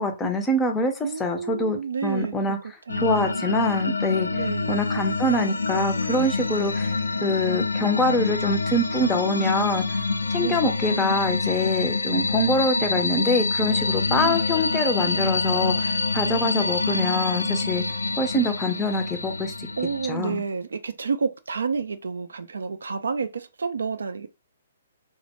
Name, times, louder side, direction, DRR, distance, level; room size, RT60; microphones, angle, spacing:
voice 1, 0.0-2.6 3.0-4.3 4.7-7.0 7.2-10.0 10.3-17.8 18.2-19.7 20.1-20.4, left 1 dB, 10° left, 0.5 m, -25 dB
voice 2, 1.0-2.6 2.9-3.5 4.3-4.8 10.4-10.6 14.1-14.4 19.8-24.3, right 5 dB, 75° right, 0.3 m, -30 dB
sound 1, 2.9-20.1, left 3 dB, 80° left, 0.3 m, -26 dB
2.1 x 2.1 x 2.8 m
figure-of-eight pair, 130°, 0 cm